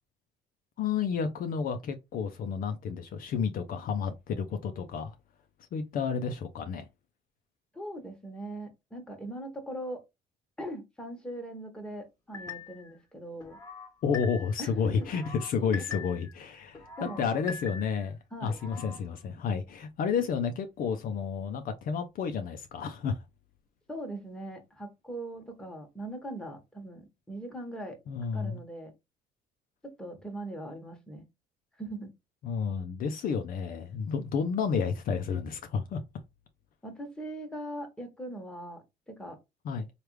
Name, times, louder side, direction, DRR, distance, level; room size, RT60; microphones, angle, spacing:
voice 1, 0.8-5.1 5.7-6.9 14.0-23.2 28.1-28.6 32.4-36.0 39.6-39.9, left 6 dB, 55° left, 0.5 m, -31 dB
voice 2, 7.7-10.0 10.6-13.6 14.6-15.0 15.7-15.8 17.0-17.2 18.3-18.6 23.9-28.0 28.3-28.9 29.8-31.2 31.8-32.1 36.8-39.4, right 1 dB, 5° left, 1.2 m, -40 dB
sound 1, 12.3-12.9 13.4-14.6 15.0-16.3 16.7-18.1 18.5-19.0, left 5 dB, 20° left, 1.3 m, -42 dB
3.2 x 2.4 x 3.1 m
cardioid pair, 110°, 17 cm